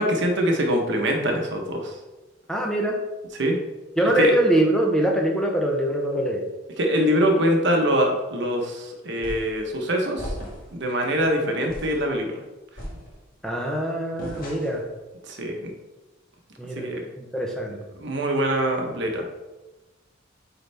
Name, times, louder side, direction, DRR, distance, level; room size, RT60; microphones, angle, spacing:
voice 1, 0.0-1.9 3.4-3.6 4.2-4.3 6.8-10.3 10.7-12.3 15.3-15.7 16.8-17.0 18.0-19.3, equal, 65° right, 2 dB, 1.0 m, -23 dB
voice 2, 2.5-2.9 4.0-6.4 13.4-14.8 16.6-16.9 17.2-17.8, right 1 dB, 5° left, 0 dB, 0.8 m, -23 dB
sound 1, 9.2-9.6 10.2-10.8 11.2-11.3 11.7-12.0 12.8-13.4 14.2-14.9, equal, 50° left, 1.7 m, -36 dB
8.4 x 4.0 x 3.4 m, 1.1 s
head